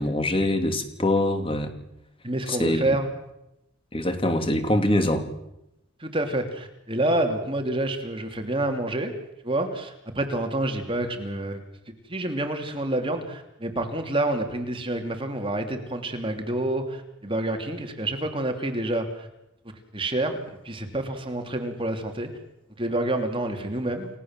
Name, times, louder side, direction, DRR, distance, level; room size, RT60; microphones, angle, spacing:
voice 1, 0.0-1.7 2.5-2.8 3.9-5.3, left 1 dB, 25° left, 6 dB, 3.2 m, -24 dB
voice 2, 2.2-3.1 6.0-9.1 9.4-11.6 12.1-19.3 19.9-22.3 22.8-24.1, right 1 dB, 25° right, 5 dB, 2.9 m, -28 dB
30.0 x 18.0 x 7.5 m, 0.85 s
head